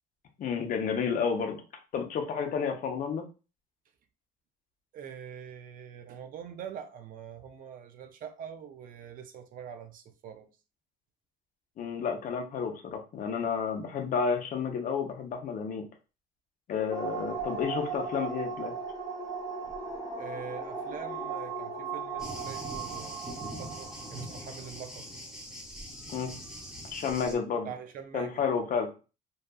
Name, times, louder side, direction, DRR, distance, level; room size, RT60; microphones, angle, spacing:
voice 1, 0.4-1.6 1.9-3.2 11.8-15.9 16.7-18.7 26.1-26.3 26.9-27.7 28.1-28.9, left 6 dB, 55° left, 0.6 m, -31 dB
voice 2, 4.9-10.5 20.2-25.1 27.3-28.6, right 8 dB, 55° right, 0.4 m, -44 dB
sound 1, 16.9-25.0, right 5 dB, 20° left, 0.9 m, -37 dB
Thunder, 22.2-27.4, equal, 5° right, 0.8 m, -42 dB
2.6 x 2.3 x 2.3 m
cardioid pair, 110°, 17 cm